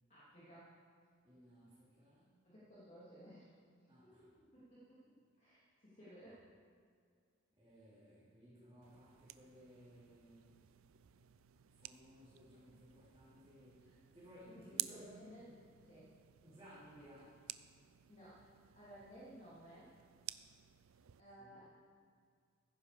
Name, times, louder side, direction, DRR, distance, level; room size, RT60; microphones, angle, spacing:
voice 1, 0.1-0.8 2.4-3.5 4.0-6.4 13.8-13.9 14.5-16.1 18.1-19.9 21.2-21.7, equal, 35° left, -10 dB, 2.7 m, -58 dB
voice 2, 1.2-2.3 3.9-4.3 7.6-10.6 11.8-15.1 16.4-17.4 21.4-21.6, equal, 20° right, -13 dB, 3.9 m, -60 dB
sound 1, 8.8-21.2, right 15 dB, 90° right, 0.5 m, -52 dB
16.0 x 9.9 x 5.0 m, 2.1 s
head